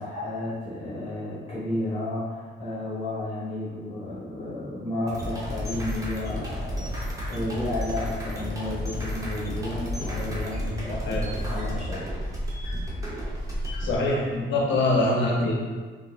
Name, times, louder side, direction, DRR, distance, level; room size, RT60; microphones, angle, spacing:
voice 1, 0.0-12.1, left 1 dB, 30° left, -10 dB, 1.1 m, -32 dB
sound 1, 5.1-13.9, equal, 15° right, 0.9 m, -32 dB
voice 2, 10.9-11.3 13.8-15.6, left 2 dB, 70° left, -2 dB, 0.8 m, -24 dB
3.6 x 2.6 x 2.4 m, 1.4 s
cardioid pair, 90°, 20 cm